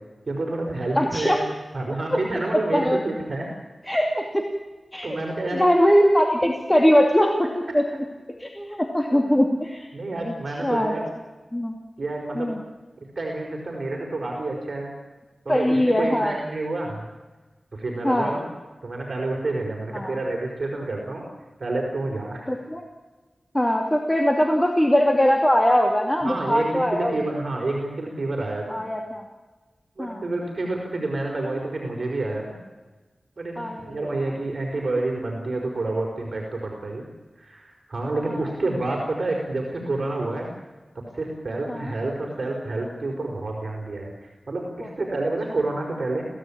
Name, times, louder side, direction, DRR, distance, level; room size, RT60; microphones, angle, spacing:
voice 1, 0.3-1.4 1.7-3.5 5.0-5.6 7.7-7.8 9.1-9.3 9.9-11.1 12.0-12.6 13.2-14.9 15.5-17.0 17.7-18.5 18.8-21.3 21.6-22.6 26.2-28.8 30.0-32.6 33.4-37.1 37.4-40.5 41.1-46.3, right 2 dB, 55° right, 0 dB, 5.2 m, -29 dB
voice 2, 1.0-1.4 2.1-2.2 2.7-3.0 3.9-4.5 4.9-5.2 5.4-7.5 7.7-7.8 8.4-9.9 10.2-10.3 10.6-10.9 11.5-11.8 12.3-12.6 15.5-16.3 18.0-18.3 19.9-20.2 22.5-22.8 23.5-27.2 28.7-29.2 30.0-30.2 33.6-34.1 38.2-38.4 41.7-41.9 44.8-44.9, equal, 15° left, 2 dB, 2.7 m, -21 dB
27.0 x 17.0 x 8.9 m, 1.3 s
wide cardioid pair, 75°, 0 cm